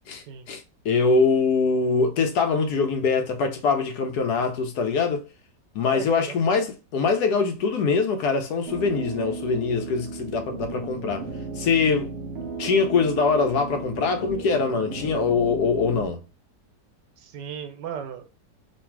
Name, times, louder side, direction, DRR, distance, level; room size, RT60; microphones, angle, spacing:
voice 1, 0.1-5.3 5.7-11.2 11.6-12.1 12.6-16.2, left 4 dB, 70° left, 1.1 m, -23 dB
voice 2, 5.9-6.4 12.5-12.6 17.2-18.3, right 8 dB, 75° right, 1.3 m, -36 dB
sound 1, 8.7-16.1, right 4 dB, 60° right, 0.6 m, -35 dB
3.2 x 2.5 x 4.4 m
omnidirectional pair, 1.9 m